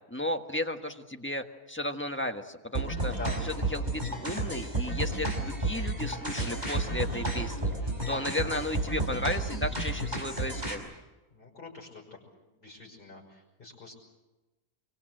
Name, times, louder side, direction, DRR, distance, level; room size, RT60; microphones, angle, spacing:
voice 1, 0.1-3.1 3.4-7.7 8.1-10.9, left 1 dB, 10° left, 5 dB, 1.4 m, -34 dB
sound 1, 2.7-10.7, right 2 dB, 30° right, 5.6 m, -32 dB
voice 2, 3.1-3.4 8.0-8.2 11.3-12.0 12.6-13.9, left 2 dB, 35° left, -1 dB, 6.1 m, -44 dB
25.5 x 24.0 x 7.8 m, 1.1 s
omnidirectional pair, 1.5 m